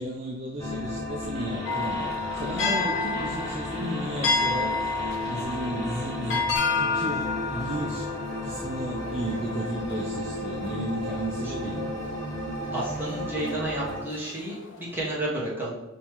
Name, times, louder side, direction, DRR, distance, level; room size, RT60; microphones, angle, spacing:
voice 1, 0.0-4.9 5.3-8.1 8.4-11.8, right 1 dB, 30° right, -2 dB, 0.4 m, -34 dB
sound 1, 0.6-14.0, left 1 dB, 15° left, 0.8 m, -34 dB
sound 2, 1.2-6.6, right 1 dB, 60° right, 0.9 m, -41 dB
sound 3, 1.7-11.2 11.6-12.2 12.7-13.4 13.9-15.1, left 4 dB, 70° left, 0.6 m, -30 dB
voice 2, 12.7-15.7, right 1 dB, 10° right, -6 dB, 1.0 m, -31 dB
5.4 x 3.0 x 3.0 m, 1.0 s
head